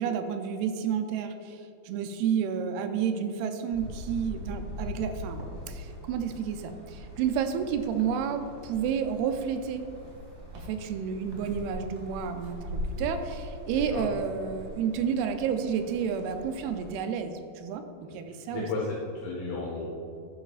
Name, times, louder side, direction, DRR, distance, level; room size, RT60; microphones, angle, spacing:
voice 1, 0.0-9.9 10.5-18.7, right 7 dB, 80° right, 7 dB, 2.5 m, -31 dB
sound 1, 3.7-16.9, equal, 25° right, 1.0 m, -44 dB
sound 2, 9.5-14.7, left 1 dB, 45° right, 3.0 m, -39 dB
voice 2, 13.7-14.1 18.3-19.8, left 3 dB, 75° left, -4 dB, 3.0 m, -34 dB
11.0 x 10.5 x 2.4 m, 2.7 s
omnidirectional pair, 4.6 m